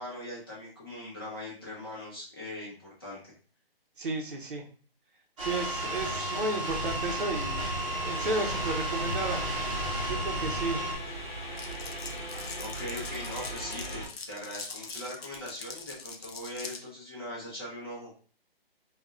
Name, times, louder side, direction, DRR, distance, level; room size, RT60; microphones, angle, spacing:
voice 1, 0.0-3.3 6.1-6.3 12.6-18.1, left 1 dB, 25° left, -5 dB, 0.7 m, -41 dB
voice 2, 4.0-4.6 5.4-7.7 8.0-9.4 10.1-10.9, right 2 dB, 60° right, 2 dB, 0.8 m, -33 dB
sound 1, 5.4-11.0, right 1 dB, 35° right, 0.8 m, -32 dB
sound 2, 7.5-14.1, right 1 dB, 50° left, 0.9 m, -39 dB
Glass, 11.6-16.8, left 4 dB, 80° left, 0.6 m, -42 dB
3.6 x 2.3 x 2.3 m, 0.41 s
hypercardioid pair, 170°, 30 cm